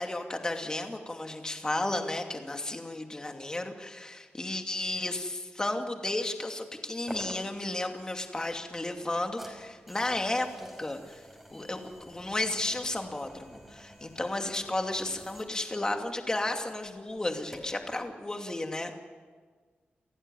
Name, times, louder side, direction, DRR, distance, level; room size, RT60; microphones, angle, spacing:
voice 1, 0.0-11.2 11.5-18.9, left 2 dB, 20° left, 4 dB, 2.6 m, -33 dB
sound 1, 7.1-17.9, equal, 5° right, 5.3 m, -50 dB
29.5 x 15.5 x 9.9 m, 1.5 s
wide cardioid pair, 130°, 4 cm